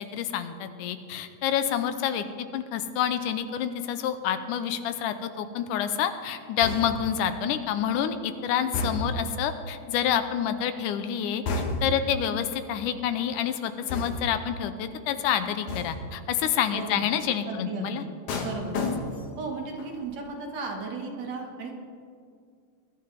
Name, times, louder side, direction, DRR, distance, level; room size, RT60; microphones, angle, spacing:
voice 1, 0.0-2.3 2.5-11.4 11.8-18.1 18.4-18.5, left 9 dB, 90° left, 10 dB, 2.3 m, -28 dB
sound 1, 6.6-7.2 8.7-9.3 11.5-12.1 13.9-14.5 15.7-16.1 18.3-19.4 19.8-20.1, left 2 dB, 70° left, 2.6 m, -31 dB
voice 2, 16.7-17.1 17.5-18.1 18.4-18.8 19.4-21.7, right 3 dB, 60° right, 1 dB, 2.5 m, -35 dB
22.0 x 11.5 x 3.4 m, 2.2 s
omnidirectional pair, 3.6 m